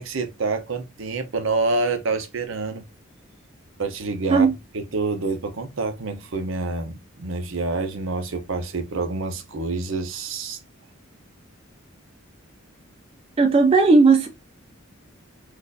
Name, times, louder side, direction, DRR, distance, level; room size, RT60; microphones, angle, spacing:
voice 1, 0.0-2.8 3.8-10.6, right 3 dB, 70° right, 0.6 m, -27 dB
voice 2, 13.4-14.3, right 4 dB, 25° right, 0.3 m, -15 dB
4.0 x 2.4 x 2.6 m
head